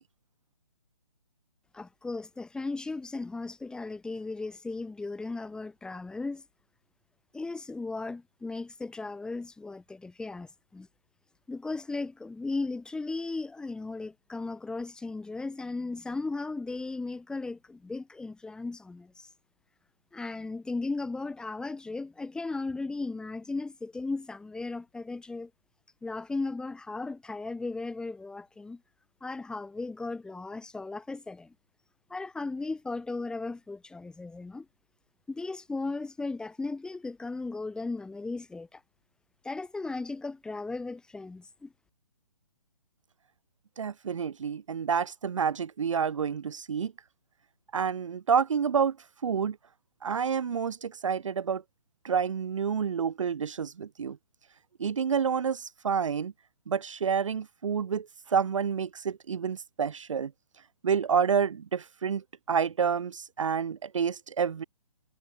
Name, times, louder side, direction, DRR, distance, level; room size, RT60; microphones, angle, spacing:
voice 1, 1.7-6.4 7.3-10.9 11.5-19.3 20.1-25.5 26.0-28.8 29.2-31.5 32.1-34.7 35.3-38.8 39.4-41.7, left 3 dB, 5° left, 2.9 m, -36 dB
voice 2, 43.8-46.9 47.7-49.0 49.2-49.6 50.0-51.6 52.0-54.2 54.8-56.3 56.7-60.3 60.8-64.6, right 7 dB, 55° right, 1.1 m, -29 dB
figure-of-eight pair, 135°, 19 cm